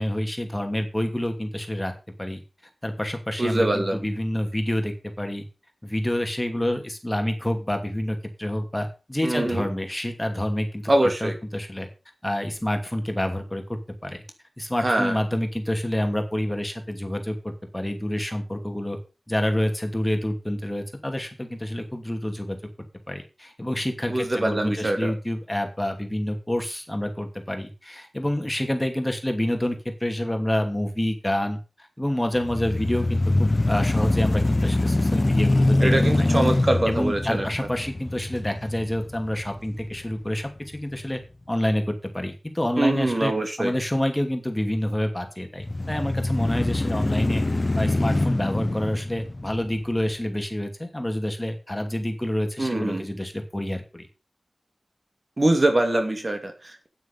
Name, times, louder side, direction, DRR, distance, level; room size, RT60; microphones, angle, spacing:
voice 1, 0.0-1.9 2.2-2.4 2.8-5.4 5.8-11.9 12.2-14.2 14.6-19.0 19.3-22.6 23.1-31.6 32.0-35.9 36.2-36.3 36.9-41.2 41.5-43.3 43.6-47.4 47.7-54.1, left 1 dB, 15° left, 5 dB, 2.5 m, -28 dB
voice 2, 3.4-4.0 9.2-9.7 10.9-11.3 14.8-15.2 24.1-25.1 35.8-37.5 42.8-43.7 52.6-53.1 55.4-56.9, right 1 dB, 40° right, 5 dB, 2.5 m, -23 dB
sound 1, 32.3-40.5 41.0-41.1 45.6-50.1, left 2 dB, 35° left, 0.9 m, -24 dB
9.3 x 9.1 x 5.4 m, 0.31 s
wide cardioid pair, 80°, 0 cm